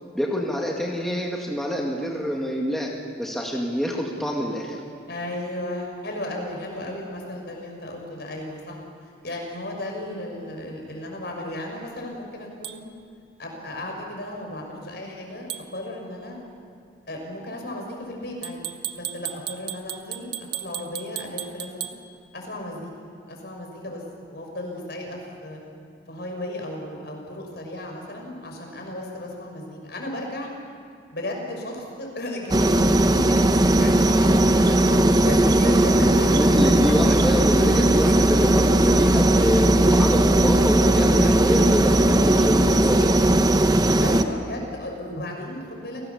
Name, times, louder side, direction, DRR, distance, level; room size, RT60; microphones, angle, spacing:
voice 1, 0.1-2.9 3.2-4.8 35.3-43.2, equal, ahead, -2 dB, 2.0 m, -26 dB
voice 2, 5.1-8.8 9.2-12.8 13.4-16.4 17.1-18.6 18.9-21.7 22.3-22.9 23.3-24.0 24.3-25.6 26.1-30.5 31.1-33.5 33.8-36.4 44.0-46.0, left 1 dB, 60° left, 1 dB, 6.0 m, -35 dB
sound 1, 12.6-12.8 15.5-15.7 18.4-22.0, right 12 dB, 65° right, 1.3 m, -34 dB
sound 2, 32.5-44.2, right 1 dB, 20° right, 0.8 m, -18 dB
29.5 x 19.0 x 7.1 m, 2.4 s
head